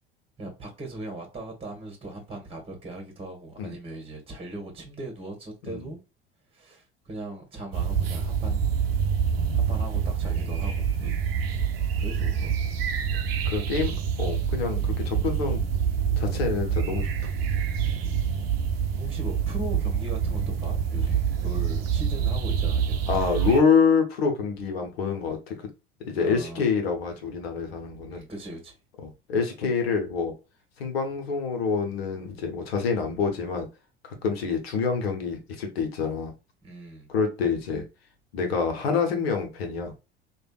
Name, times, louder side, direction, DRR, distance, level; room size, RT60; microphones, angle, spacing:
voice 1, 0.4-6.0 6.5-8.7 9.5-10.9 12.0-12.6 18.0-18.3 19.0-23.0 26.1-26.7 28.1-28.8 36.6-37.1, right 2 dB, 20° right, 1.3 m, -39 dB
sound 1, 7.7-23.6, right 7 dB, 75° right, 0.7 m, -26 dB
voice 2, 13.4-15.6 16.2-17.1 23.1-25.7 26.1-28.2 29.0-30.3 30.8-33.7 34.0-36.3 37.1-37.8 38.3-39.9, left 5 dB, 80° left, 0.9 m, -26 dB
3.3 x 2.5 x 2.3 m
hypercardioid pair, 65°, 30 cm